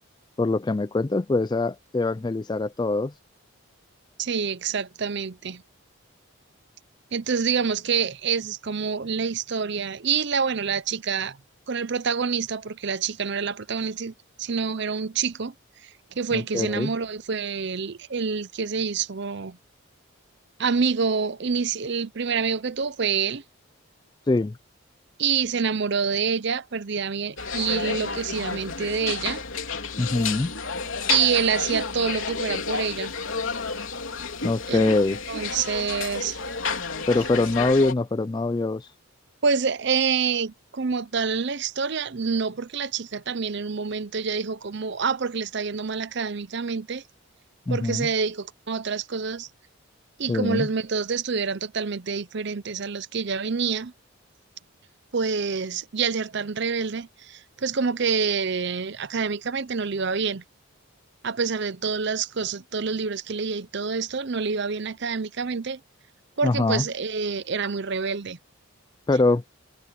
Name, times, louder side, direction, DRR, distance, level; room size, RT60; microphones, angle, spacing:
voice 1, 0.4-3.1 16.3-16.9 24.3-24.6 30.0-30.5 34.4-35.2 37.1-38.9 47.7-48.1 50.3-50.7 66.4-66.8 69.1-69.4, left 2 dB, 20° left, 0.3 m, -23 dB
voice 2, 4.2-5.6 7.1-11.4 11.7-15.5 15.8-15.9 16.2-19.6 20.6-23.4 25.2-29.4 31.1-33.1 34.7-34.9 35.3-36.4 39.4-47.0 47.7-49.5 50.2-53.9 55.1-60.4 61.2-65.8 66.4-68.4, right 5 dB, 50° right, 0.6 m, -27 dB
sound 1, 27.4-37.9, left 5 dB, 65° left, 3.5 m, -31 dB
head